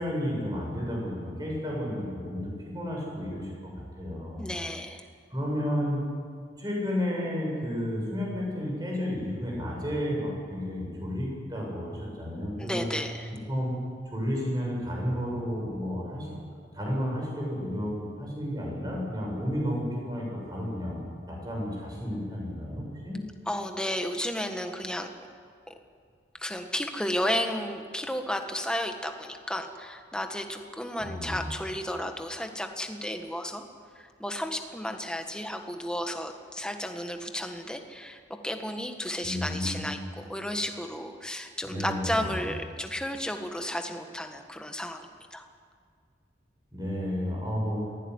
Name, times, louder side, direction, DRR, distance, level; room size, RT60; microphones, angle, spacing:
voice 1, 0.0-3.7 4.0-4.5 5.3-6.0 6.6-12.9 13.5-13.7 14.1-16.3 16.7-21.0 21.3-23.2 31.0-31.4 39.2-39.9 41.6-42.3 46.7-47.8, equal, 20° right, -2 dB, 7.7 m, -32 dB
voice 2, 4.4-5.0 12.6-13.3 23.5-25.1 25.7-25.8 26.3-33.6 33.9-45.4, equal, 5° left, 5 dB, 1.5 m, -33 dB
23.0 x 17.0 x 9.8 m, 2.1 s
head